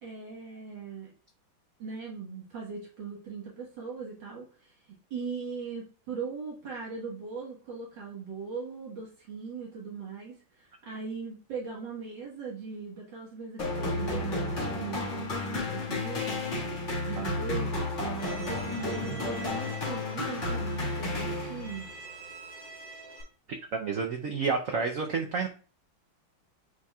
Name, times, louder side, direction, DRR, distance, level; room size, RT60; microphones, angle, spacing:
voice 1, 0.0-1.1 1.8-16.4 16.7-17.9 18.7-21.9, right 5 dB, 65° right, -4 dB, 2.0 m, -39 dB
sound 1, 13.6-21.9, left 2 dB, 35° left, 2.1 m, -32 dB
Bowed string instrument, 18.2-23.2, right 3 dB, 55° left, 4.0 m, -46 dB
voice 2, 18.7-19.3 23.7-25.5, right 5 dB, 85° right, 3 dB, 0.7 m, -31 dB
9.6 x 4.3 x 2.3 m, 0.39 s
omnidirectional pair, 2.3 m